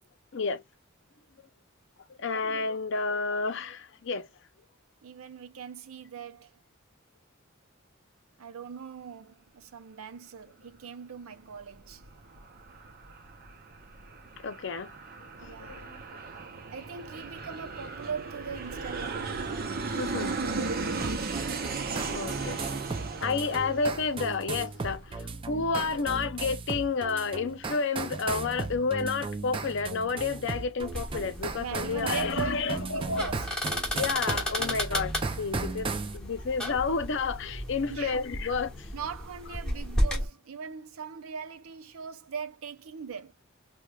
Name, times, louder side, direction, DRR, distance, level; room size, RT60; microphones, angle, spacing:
voice 1, 0.3-0.6 2.2-4.3 14.4-14.9 15.4-16.0 19.9-20.4 22.1-22.6 23.2-33.2 33.9-38.9, left 4 dB, 60° left, 0.6 m, -30 dB
voice 2, 5.0-6.5 8.4-12.0 15.4-15.8 16.7-19.6 21.0-21.3 31.6-33.8 37.9-38.2 38.9-43.3, right 6 dB, 80° right, 0.5 m, -40 dB
Aircraft, 11.5-24.7, right 4 dB, 45° right, 0.7 m, -36 dB
sound 1, 21.0-36.2, right 4 dB, 25° right, 0.4 m, -36 dB
sound 2, 30.8-40.3, equal, 5° left, 1.2 m, -34 dB
4.6 x 2.3 x 2.2 m
head